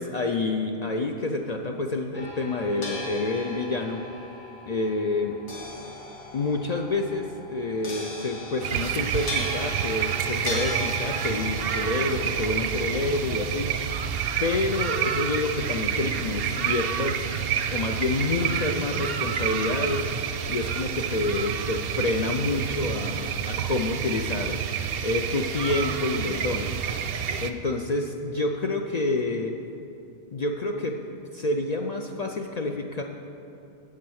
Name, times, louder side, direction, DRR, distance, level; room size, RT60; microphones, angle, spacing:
voice 1, 0.0-4.0 4.7-5.4 6.3-13.7 14.4-17.2 17.7-20.1 20.5-24.7 25.0-26.8 27.4-29.5 30.3-31.0 31.3-33.0, left 2 dB, 55° left, 3 dB, 0.4 m, -28 dB
sound 1, 2.1-14.4, left 1 dB, 85° left, 1.8 m, -38 dB
sound 2, 8.6-27.5, right 8 dB, 65° right, 0.7 m, -29 dB
8.1 x 7.5 x 6.3 m, 2.8 s
omnidirectional pair, 1.2 m